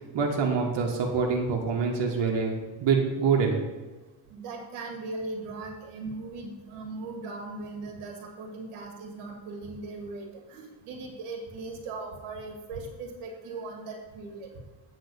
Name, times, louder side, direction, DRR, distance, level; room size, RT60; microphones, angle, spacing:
voice 1, 0.1-2.5 2.8-3.6, right 5 dB, 60° right, 0 dB, 1.5 m, -25 dB
voice 2, 4.3-14.5, right 3 dB, 90° right, 2 dB, 1.8 m, -39 dB
8.6 x 3.8 x 6.7 m, 1.2 s
cardioid pair, 90°, 49 cm